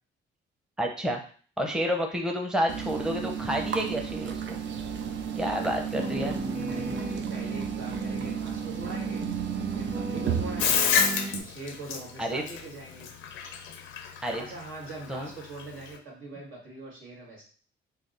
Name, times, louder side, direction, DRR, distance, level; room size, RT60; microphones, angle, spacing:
voice 1, 0.8-1.2 1.6-4.6 5.4-6.4 12.2-12.4 14.2-14.4 15.1-15.3, equal, 5° right, 2 dB, 0.6 m, -29 dB
sound 1, 2.7-10.6, right 7 dB, 70° right, 0.5 m, -33 dB
sound 2, 5.9-11.4, right 3 dB, 50° right, 1.3 m, -35 dB
voice 2, 6.7-9.2 9.7-10.9 11.3-13.1 14.4-17.4, right 2 dB, 85° right, -4 dB, 1.7 m, -42 dB
Bathtub (filling or washing), 10.6-16.0, left 7 dB, 85° left, 0.5 m, -28 dB
3.4 x 2.3 x 3.9 m, 0.42 s
cardioid pair, 90°, 20 cm